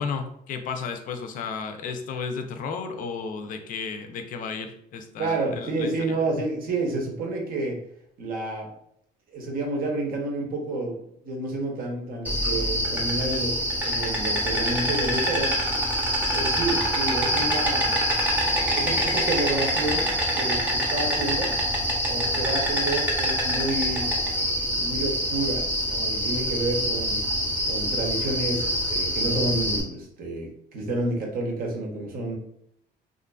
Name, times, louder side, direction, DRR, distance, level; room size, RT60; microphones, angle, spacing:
voice 1, 0.0-6.2, left 5 dB, 55° left, 6 dB, 0.4 m, -33 dB
voice 2, 5.2-7.8 8.2-8.7 9.3-15.5 16.3-17.9 18.7-20.1 20.4-21.5 22.0-24.1 24.7-27.2 27.7-32.4, right 2 dB, 60° right, 1 dB, 0.8 m, -29 dB
Insect, 12.2-29.8, equal, 10° right, 0.7 m, -25 dB
2.5 x 2.4 x 2.2 m, 0.72 s
cardioid pair, 110°, 17 cm